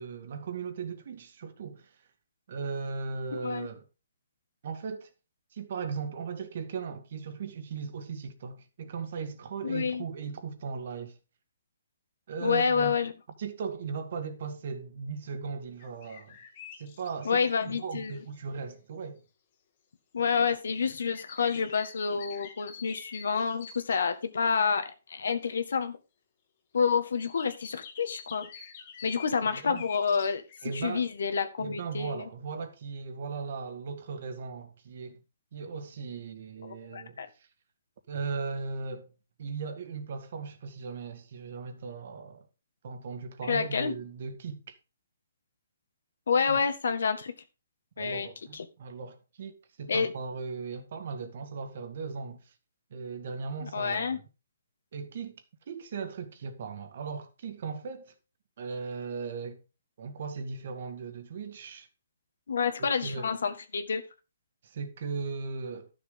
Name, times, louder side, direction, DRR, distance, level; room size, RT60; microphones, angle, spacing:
voice 1, 0.0-1.9 2.5-3.9 4.6-5.1 5.5-11.2 12.3-13.0 13.4-16.4 16.8-19.2 22.1-22.2 29.4-29.8 30.6-31.1 31.6-35.2 35.5-37.2 38.1-39.1 39.4-42.5 42.8-44.7 46.5-46.6 48.0-52.5 52.9-54.2 54.9-58.2 58.6-59.6 60.0-61.9 62.8-63.3 64.6-65.9, right 5 dB, 50° right, 1.9 m, -38 dB
voice 2, 9.6-10.1 12.4-13.1 17.3-18.2 20.1-26.0 26.7-28.5 29.0-30.4 30.7-32.3 36.6-37.3 43.5-43.9 46.3-47.3 48.0-48.3 48.5-48.7 49.9-50.1 53.6-54.2 62.5-64.0, left 6 dB, 75° left, 1.8 m, -28 dB
sound 1, 15.8-18.4 20.8-24.0 27.2-30.7, left 7 dB, 40° left, 1.8 m, -47 dB
12.5 x 6.7 x 3.8 m
hypercardioid pair, 160°, 0 cm